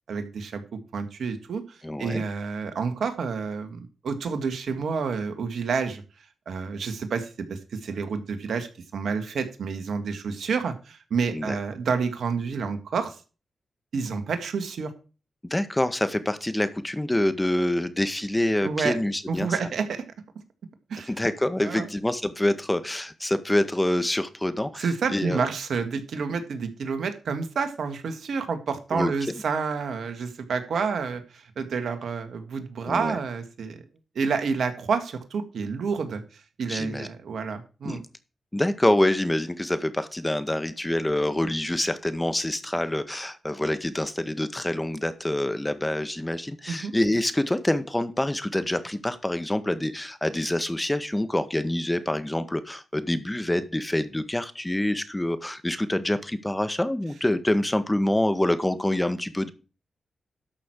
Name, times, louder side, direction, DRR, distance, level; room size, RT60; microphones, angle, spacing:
voice 1, 0.1-6.0 6.5-13.2 13.9-14.9 18.6-19.0 19.3-20.0 20.9-21.1 21.6-21.9 24.8-33.8 34.2-36.2 36.6-38.0 46.7-46.9, right 5 dB, 75° right, 9 dB, 1.8 m, -29 dB
voice 2, 1.8-2.2 11.3-11.6 15.5-19.5 21.1-25.4 28.9-29.1 32.8-33.2 36.7-37.1 37.8-38.0 38.5-59.5, left 1 dB, 15° left, 11 dB, 1.7 m, -26 dB
12.5 x 6.2 x 4.8 m, 0.34 s
supercardioid pair, 40°, 0 cm